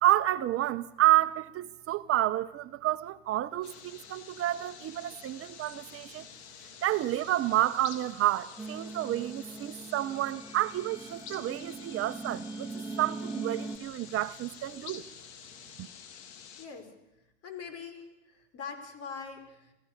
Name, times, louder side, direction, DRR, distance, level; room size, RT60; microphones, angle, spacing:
voice 1, 0.0-6.3 6.8-12.7 13.0-15.0 15.8-15.9, right 14 dB, 40° right, 1.0 m, -29 dB
sound 1, 3.6-16.7, left 7 dB, 70° left, 3.2 m, -49 dB
sound 2, 8.6-13.8, right 3 dB, 5° right, 2.2 m, -41 dB
voice 2, 16.6-16.9 17.4-19.7, left 6 dB, 45° left, 5.0 m, -43 dB
27.0 x 15.5 x 6.7 m
hypercardioid pair, 90°, 34 cm